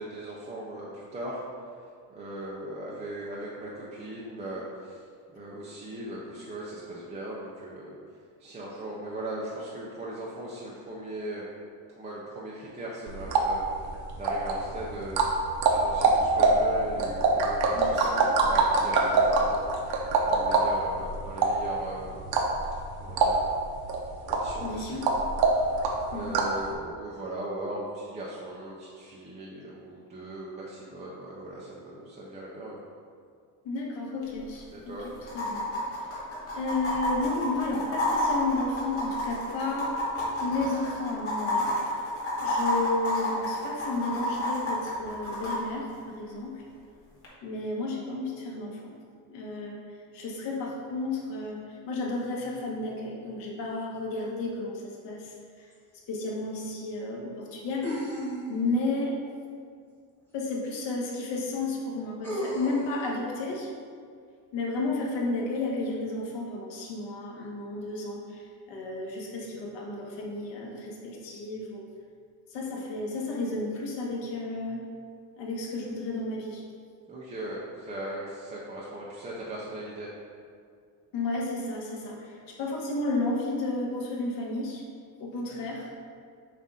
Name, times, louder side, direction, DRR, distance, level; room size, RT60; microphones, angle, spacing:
voice 1, 0.0-1.4 2.1-5.0 5.3-8.0 8.4-11.5 12.0-13.9 14.1-15.3 15.7-20.0 20.2-22.2 23.0-23.4 24.3-25.1 25.6-25.8 26.0-32.8 34.7-35.1 77.1-80.1, right 1 dB, 15° right, -6 dB, 0.4 m, -39 dB
sound 1, 13.1-26.6, right 3 dB, 60° right, 0.8 m, -25 dB
voice 2, 17.7-18.2 24.6-25.0 26.1-26.4 33.6-35.6 35.9-36.2 36.5-39.9 40.4-42.0 42.4-46.6 47.4-48.9 49.3-49.9 50.1-55.7 56.1-58.1 58.5-59.1 60.3-63.7 64.5-71.9 72.5-74.8 75.4-76.6 81.1-84.8 85.2-86.0, left 2 dB, 70° left, -3 dB, 1.4 m, -32 dB
sound 2, 34.2-34.3 34.5-34.6 35.3-45.6 47.2-47.3, left 1 dB, 30° left, 1.3 m, -30 dB
sound 3, 55.7-55.8 57.8-58.8 60.6-60.7 62.2-63.0, equal, 5° left, 0.9 m, -34 dB
7.3 x 2.5 x 5.4 m, 2.2 s
cardioid pair, 180°, 44 cm